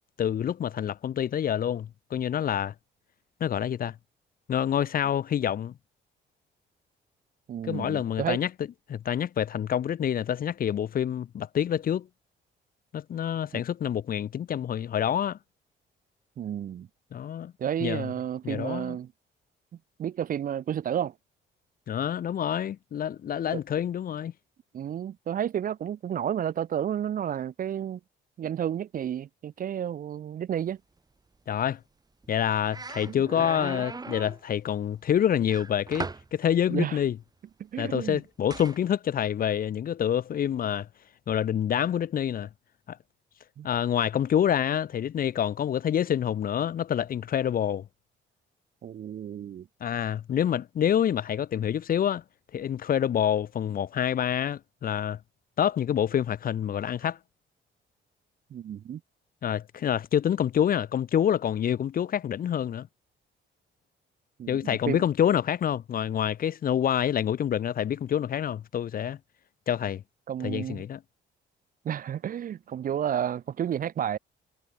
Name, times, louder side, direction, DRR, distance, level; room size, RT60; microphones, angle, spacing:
voice 1, 0.2-2.7 3.4-3.9 4.5-5.7 7.6-8.5 8.9-12.1 12.9-15.4 17.1-17.5 17.8-18.1 18.4-19.0 21.9-24.3 31.5-31.8 32.3-37.2 37.8-40.9 41.3-42.5 42.9-43.0 43.6-47.9 49.8-52.2 52.5-55.2 55.6-57.2 59.4-62.9 64.5-69.2 69.7-70.0 70.4-71.0, left 9 dB, 45° left, 0.5 m, -27 dB
voice 2, 7.5-8.4 13.5-13.6 16.4-16.9 17.6-19.1 20.0-21.1 23.5-23.6 24.7-28.0 28.4-30.8 33.1-33.2 36.7-37.0 37.6-38.2 43.6-43.7 48.8-49.7 58.5-59.0 64.4-65.0 70.3-70.9 71.8-74.2, right 9 dB, 45° right, 0.4 m, -31 dB
sound 1, 32.2-32.4 32.7-34.4 35.5-36.3 38.5-38.8, right 3 dB, 20° right, 1.0 m, -37 dB
cardioid pair, 90°, 20 cm